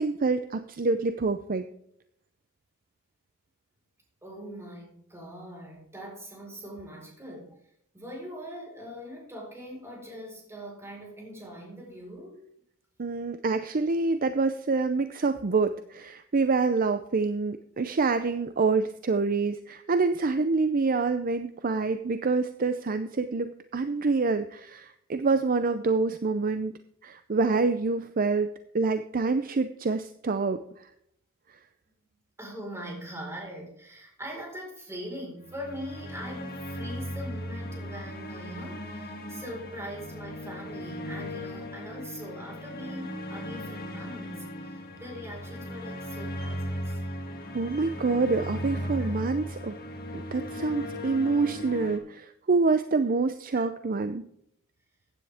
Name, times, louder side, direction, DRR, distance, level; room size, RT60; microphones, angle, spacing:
voice 1, 0.0-1.7 13.0-26.7 27.0-28.5 28.7-30.6 47.5-49.7 50.1-54.2, right 4 dB, 40° right, 10 dB, 0.5 m, -26 dB
voice 2, 4.2-7.6 7.9-12.4 32.4-47.0 47.5-48.0 49.0-49.1 53.5-53.7, equal, 10° right, -1 dB, 4.6 m, -42 dB
sound 1, 35.4-52.0, equal, 45° left, 2.3 m, -37 dB
15.0 x 9.8 x 3.5 m, 0.70 s
head